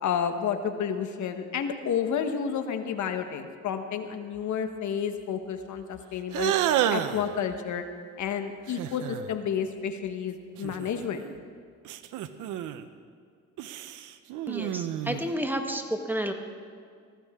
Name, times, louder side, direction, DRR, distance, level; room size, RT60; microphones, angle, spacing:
voice 1, 0.0-6.5 6.9-7.8 8.2-11.3, left 7 dB, 70° left, 7 dB, 1.2 m, -30 dB
sound 1, 6.3-7.3 8.7-9.3 10.6-11.3 11.9-12.8 13.6-15.4, right 11 dB, 90° right, 0.7 m, -30 dB
voice 2, 14.5-16.3, equal, 5° right, 5 dB, 1.3 m, -31 dB
19.0 x 15.0 x 3.6 m, 2.1 s
cardioid pair, 90°, 30 cm